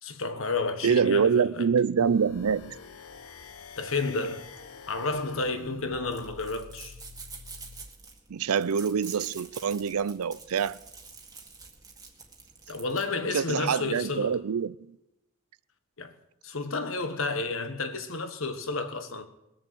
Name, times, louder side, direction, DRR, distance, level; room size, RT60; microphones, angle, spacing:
voice 1, 0.0-1.7 3.8-4.5 4.9-7.0 12.7-14.4 16.0-16.1 16.4-19.3, left 3 dB, 65° left, 1.5 m, -31 dB
voice 2, 0.8-2.7 8.3-10.8 13.3-15.0, right 6 dB, 85° right, 0.5 m, -25 dB
sound 1, 2.0-7.9, left 4 dB, 90° left, 1.0 m, -47 dB
sound 2, 2.3-13.1, right 5 dB, 15° right, 1.9 m, -48 dB
21.5 x 7.1 x 7.8 m
head